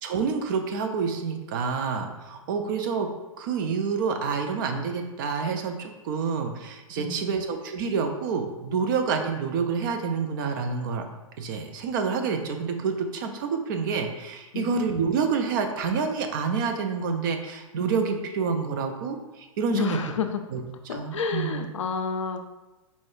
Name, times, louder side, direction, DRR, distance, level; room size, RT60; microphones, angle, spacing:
voice 1, 0.0-3.1 3.4-11.0 11.4-20.0 20.5-20.6 20.9-21.7, right 5 dB, 40° right, 5 dB, 0.4 m, -28 dB
voice 2, 7.0-7.3 14.5-14.8 19.7-20.4 20.9-22.4, left 6 dB, 60° left, 6 dB, 0.5 m, -30 dB
4.2 x 2.2 x 4.5 m, 1.1 s
figure-of-eight pair, 105°, 17 cm